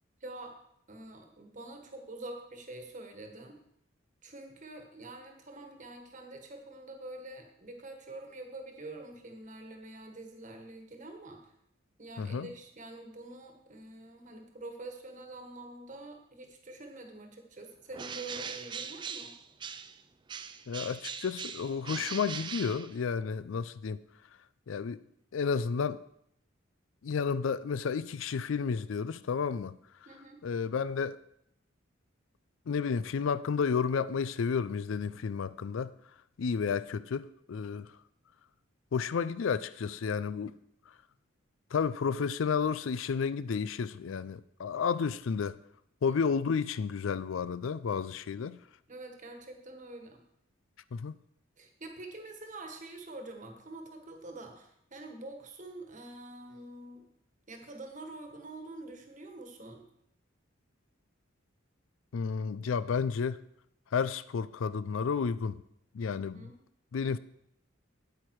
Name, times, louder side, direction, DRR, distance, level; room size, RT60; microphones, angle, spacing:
voice 1, 0.2-0.6 0.9-3.6 4.2-11.5 12.0-19.3 30.0-30.4 46.1-46.2 48.9-50.2 51.6-57.1 57.5-59.8 66.1-66.6, right 2 dB, 40° right, 1.4 m, -46 dB
voice 2, 12.2-12.5 20.7-24.0 24.7-25.0 25.3-26.0 27.0-29.7 30.4-31.2 32.7-35.9 36.4-37.9 38.9-40.5 41.7-45.6 46.0-48.6 50.9-51.1 62.1-63.4 63.9-65.6 65.9-66.5 66.9-67.2, left 6 dB, 75° left, 0.4 m, -31 dB
Bird, 17.9-20.0 20.3-23.4, right 6 dB, 25° right, 0.4 m, -41 dB
8.8 x 8.7 x 4.7 m
head